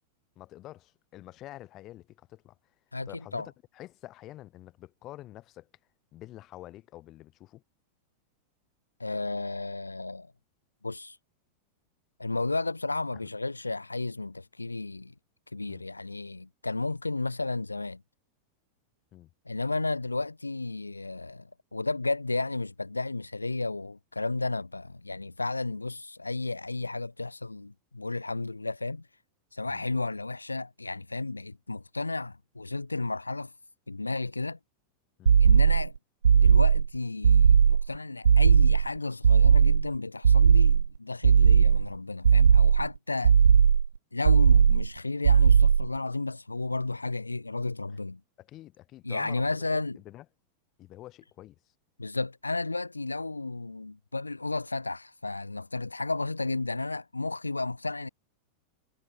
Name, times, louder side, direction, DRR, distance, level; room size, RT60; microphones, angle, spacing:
voice 1, 0.4-2.6 3.1-5.7 6.1-7.6 13.2-13.3 15.7-15.8 19.1-19.3 29.7-29.8 35.2-35.4 41.4-41.6 48.4-50.3 50.8-51.6, left 15 dB, 35° left, 3.7 m, -47 dB
voice 2, 2.9-3.5 9.0-10.3 10.8-11.2 12.2-15.1 15.5-18.0 19.5-29.0 29.5-33.5 33.9-34.6 35.4-35.9 36.3-43.3 44.1-48.2 49.0-50.0 52.0-58.1, left 3 dB, 80° left, 3.0 m, -33 dB
sound 1, 35.3-35.9 36.2-36.9 37.2-37.9 38.2-38.9 39.2-39.9 40.2-40.9 41.2-41.9 42.2-42.9 43.2-43.9 44.2-44.9 45.2-45.9, right 7 dB, 70° right, 0.4 m, -18 dB
figure-of-eight pair, 90°, 0 cm